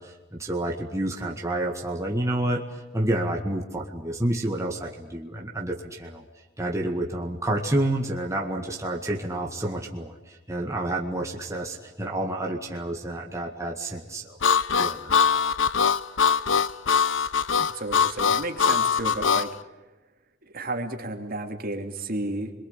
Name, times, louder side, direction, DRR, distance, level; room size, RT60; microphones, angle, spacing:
voice 1, 0.0-6.2 6.6-14.4 14.8-15.1, right 1 dB, 15° right, 0 dB, 1.9 m, -29 dB
Harmonica, 14.4-19.5, left 6 dB, 90° left, 0.8 m, -22 dB
voice 2, 17.7-19.5 20.5-22.5, right 2 dB, 50° right, 4 dB, 2.8 m, -32 dB
29.0 x 23.0 x 8.3 m, 1.1 s
head